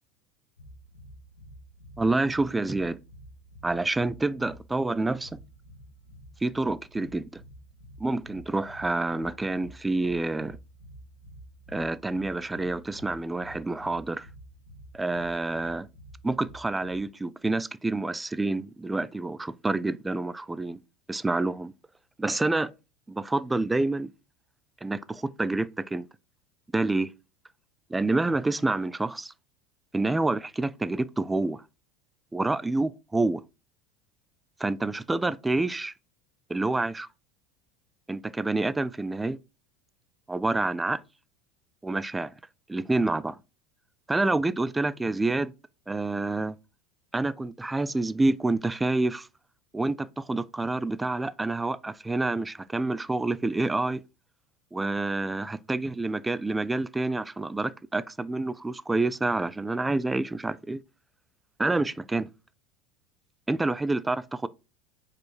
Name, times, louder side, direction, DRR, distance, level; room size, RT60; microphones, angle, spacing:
sound 1, 0.6-17.0, right 1 dB, 75° left, 1.3 m, -50 dB
voice 1, 2.0-3.0 3.6-5.4 6.4-7.4 8.0-10.6 11.7-14.3 14.9-15.9 16.2-20.8 21.1-21.7 22.2-22.7 23.1-24.1 24.8-26.1 26.7-27.1 27.9-29.3 29.9-31.6 32.3-33.4 34.6-35.9 36.5-37.1 38.1-39.4 40.3-41.0 41.8-42.3 42.7-43.4 44.1-45.5 45.9-46.6 47.1-49.3 49.7-54.0 54.7-60.8 61.6-62.3 63.5-64.5, right 2 dB, 10° right, 0.5 m, -28 dB
5.0 x 4.6 x 4.5 m
hypercardioid pair, 75°, 0 cm